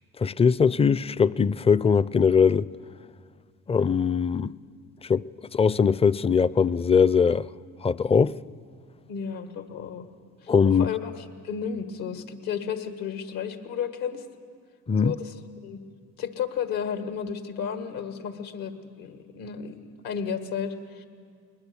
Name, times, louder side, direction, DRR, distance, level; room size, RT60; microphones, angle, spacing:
voice 1, 0.2-2.7 3.7-4.6 5.0-7.5 7.8-8.3 10.5-10.9 14.9-15.2, left 6 dB, 15° left, 0.4 m, -21 dB
voice 2, 9.1-10.1 10.4-10.5 10.8-14.2 15.0-15.3 15.6-15.8 16.2-21.0, left 7 dB, 75° left, 2.0 m, -33 dB
20.5 x 20.5 x 7.1 m
supercardioid pair, 65°, 36 cm